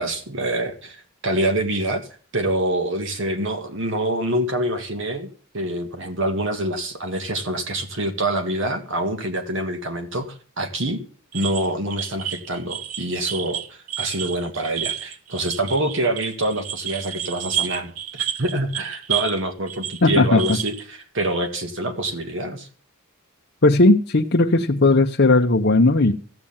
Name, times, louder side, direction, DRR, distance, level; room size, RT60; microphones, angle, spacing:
voice 1, 0.0-2.1 2.3-5.3 5.5-11.0 11.3-17.9 18.2-22.7, right 1 dB, 60° right, 6 dB, 1.8 m, -26 dB
sound 1, 11.3-19.4 19.7-20.8, right 10 dB, 85° right, 1.3 m, -30 dB
voice 2, 20.0-20.4 23.6-26.1, left 2 dB, 50° left, 2 dB, 0.9 m, -16 dB
15.0 x 8.7 x 7.2 m, 0.39 s
head